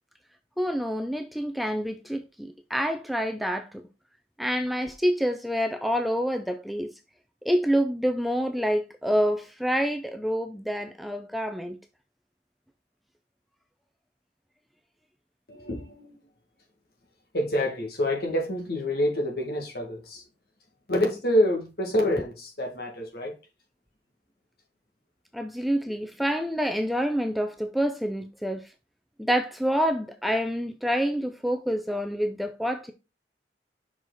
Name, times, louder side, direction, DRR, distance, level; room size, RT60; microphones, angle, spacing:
voice 1, 0.6-3.8 4.4-6.9 7.4-11.8 25.3-28.6 29.2-32.9, equal, ahead, 0.4 m, -27 dB
voice 2, 15.5-16.2 17.3-20.2 20.9-23.3, left 1 dB, 60° left, 2.0 m, -27 dB
5.9 x 4.9 x 3.9 m
head